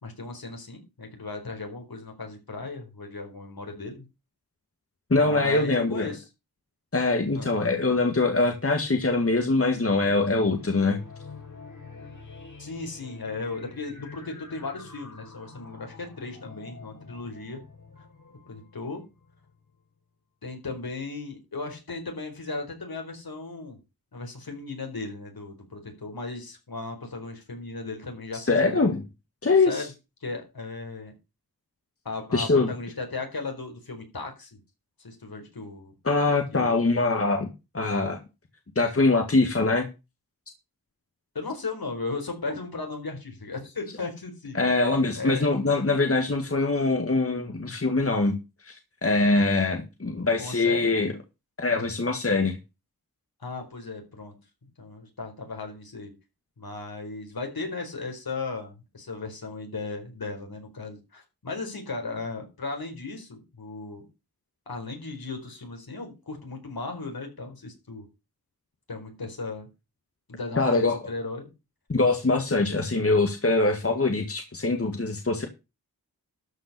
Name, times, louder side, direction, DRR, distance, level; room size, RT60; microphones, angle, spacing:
voice 1, 0.0-4.1 5.2-6.2 7.3-7.5 12.6-17.6 18.5-19.0 20.4-23.8 24.1-29.0 29.7-29.9 30.2-31.1 32.0-34.5 35.0-35.9 36.5-36.8 41.3-44.6 45.2-45.5 50.4-50.9 53.4-54.4 54.8-56.1 56.6-64.1 64.7-68.0 68.9-69.7 70.3-71.5, left 3 dB, 70° left, 3 dB, 4.5 m, -36 dB
voice 2, 5.1-6.1 6.9-11.0 28.3-29.0 29.4-29.9 32.3-32.7 36.0-37.5 37.7-38.2 38.8-39.9 44.5-48.4 48.6-51.1 51.6-52.6 70.6-71.0 71.9-75.5, left 3 dB, 40° left, 5 dB, 1.9 m, -23 dB
sound 1, 9.6-19.8, left 4 dB, 55° left, 4.1 m, -47 dB
13.0 x 5.5 x 6.7 m, 0.27 s
wide cardioid pair, 70°, 37 cm